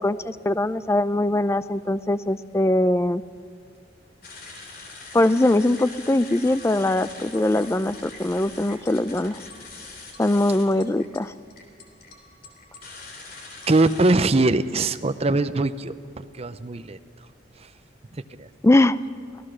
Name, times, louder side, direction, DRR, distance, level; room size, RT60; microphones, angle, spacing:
voice 1, 0.0-3.2 5.1-9.4 10.2-11.3 18.6-19.0, left 1 dB, 15° left, 15 dB, 0.4 m, -21 dB
sound 1, 4.2-14.2, left 3 dB, 55° left, 3.3 m, -42 dB
voice 2, 13.7-17.0 17.6-17.7 18.1-18.5, right 2 dB, 35° right, 10 dB, 0.6 m, -22 dB
25.0 x 16.5 x 6.3 m, 2.3 s
head